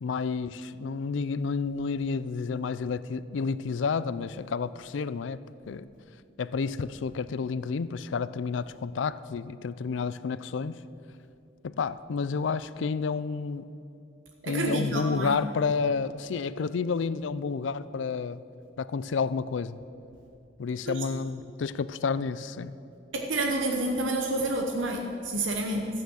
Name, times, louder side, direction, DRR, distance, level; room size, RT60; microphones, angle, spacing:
voice 1, 0.0-5.4 5.7-5.8 6.4-10.8 11.6-13.7 14.5-18.4 18.8-19.8 20.6-22.7, left 5 dB, 80° left, 16 dB, 0.4 m, -30 dB
voice 2, 14.4-15.4 20.9-21.0 23.1-25.9, right 2 dB, 85° right, 2 dB, 1.0 m, -29 dB
13.0 x 9.3 x 6.3 m, 2.8 s
head